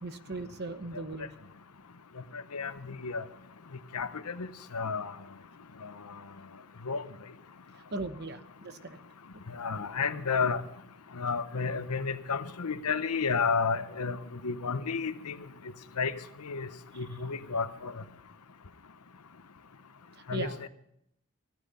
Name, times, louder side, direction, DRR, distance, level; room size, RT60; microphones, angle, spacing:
voice 1, 0.0-1.3 7.9-9.0 16.9-17.0 20.3-20.6, right 3 dB, 50° right, 11 dB, 1.0 m, -38 dB
voice 2, 2.5-3.2 3.9-4.5 4.7-5.1 5.8-5.9 6.9-7.0 9.5-10.6 11.2-14.2 14.4-15.4 16.0-16.1 16.4-16.7 17.0-17.9 20.3-20.7, left 5 dB, 90° left, 12 dB, 0.9 m, -31 dB
16.5 x 13.5 x 5.5 m, 0.78 s
head